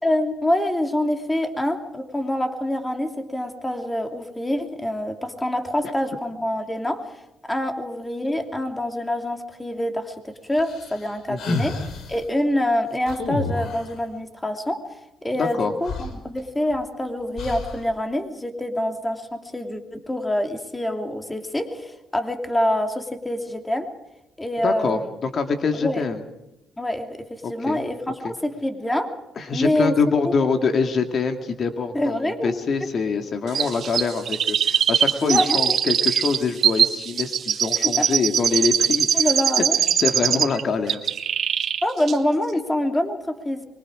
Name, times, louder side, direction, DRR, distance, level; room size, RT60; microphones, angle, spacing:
voice 1, 0.0-7.1 7.5-11.8 12.1-14.8 15.2-23.9 24.4-25.1 25.8-26.0 26.8-29.1 29.5-29.9 30.2-30.3 31.9-32.6 35.2-35.8 38.0-38.1 39.1-39.8 41.8-43.7, left 1 dB, 10° left, 5 dB, 2.9 m, -25 dB
sound 1, 10.6-12.2 13.1-14.0 15.5-15.6 15.8-16.8 17.4-17.9, left 3 dB, 70° left, 4.0 m, -30 dB
voice 2, 11.3-11.6 15.4-15.7 24.6-26.2 27.4-27.8 28.2-28.3 29.4-39.3 39.6-39.7 39.9-41.0, left 5 dB, 50° left, 6 dB, 2.2 m, -24 dB
Chirp tweet, 33.5-40.6 40.9-41.8 42.1-42.2, right 8 dB, 60° right, 1.7 m, -21 dB
24.5 x 23.5 x 5.0 m, 0.91 s
cardioid pair, 90°, 0 cm